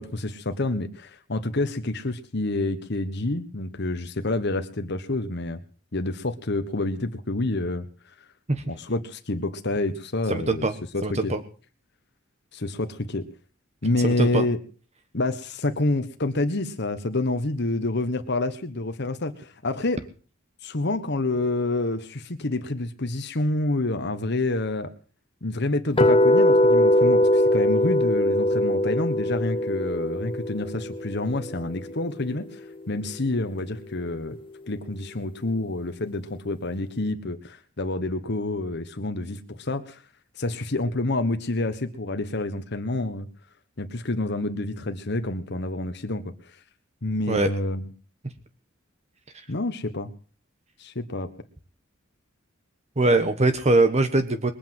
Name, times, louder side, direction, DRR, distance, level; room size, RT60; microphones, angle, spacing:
voice 1, 0.0-5.6 5.9-7.9 8.7-10.7 10.9-11.4 12.5-13.2 13.8-14.6 15.1-20.0 20.6-24.9 25.4-34.4 34.7-40.0 40.4-43.3 43.8-46.6 47.0-47.9 49.5-50.1 50.8-51.3, left 2 dB, 55° left, 8 dB, 1.3 m, -28 dB
voice 2, 10.3-10.7 11.0-11.4 14.0-14.4 47.3-47.5 53.0-54.5, right 2 dB, 35° right, 9 dB, 1.3 m, -22 dB
sound 1, 26.0-32.0, left 1 dB, 25° left, 1.4 m, -21 dB
22.0 x 8.6 x 7.6 m, 0.40 s
head